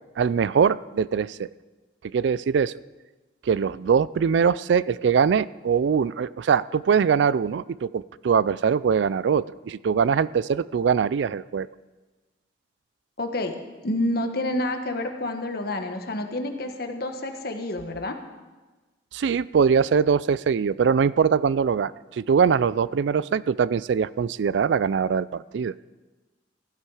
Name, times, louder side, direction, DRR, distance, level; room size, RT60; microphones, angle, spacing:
voice 1, 0.2-1.5 2.1-2.7 3.4-11.7 19.1-25.7, right 6 dB, 70° right, 19 dB, 0.3 m, -22 dB
voice 2, 13.2-13.5 13.8-18.2, left 1 dB, 55° left, 5 dB, 1.4 m, -28 dB
15.5 x 12.0 x 4.9 m, 1.2 s
head